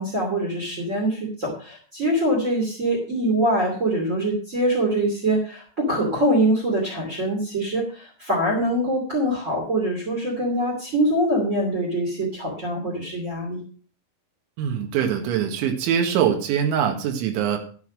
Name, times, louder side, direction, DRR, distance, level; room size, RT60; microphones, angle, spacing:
voice 1, 0.0-13.6, right 1 dB, 25° right, -1 dB, 1.6 m, -24 dB
voice 2, 14.6-17.6, right 8 dB, 70° right, 3 dB, 3.9 m, -23 dB
13.0 x 6.4 x 6.2 m, 0.42 s
omnidirectional pair, 5.7 m